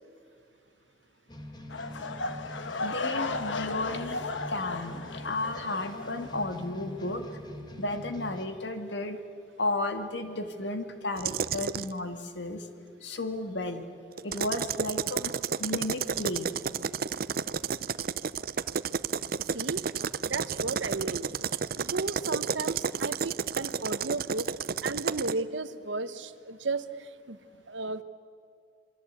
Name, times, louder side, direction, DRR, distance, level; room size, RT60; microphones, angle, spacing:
sound 1, 1.3-8.5, equal, 25° left, 2.1 m, -44 dB
sound 2, 1.7-6.7 7.0-7.3 7.9-8.0, left 3 dB, 90° left, 1.4 m, -36 dB
voice 1, 2.8-7.2 7.8-9.2 9.6-12.7 13.0-13.9 14.2-15.3 15.6-16.5, left 2 dB, 75° left, 7 dB, 2.1 m, -33 dB
sound 3, 11.2-11.9 14.2-25.4, right 6 dB, 50° right, 0.5 m, -31 dB
voice 2, 19.5-19.8 20.2-21.3 21.8-24.5 24.8-26.8 27.3-27.4 27.7-28.0, right 3 dB, 85° right, 12 dB, 1.1 m, -34 dB
28.0 x 23.0 x 8.4 m, 2.4 s
head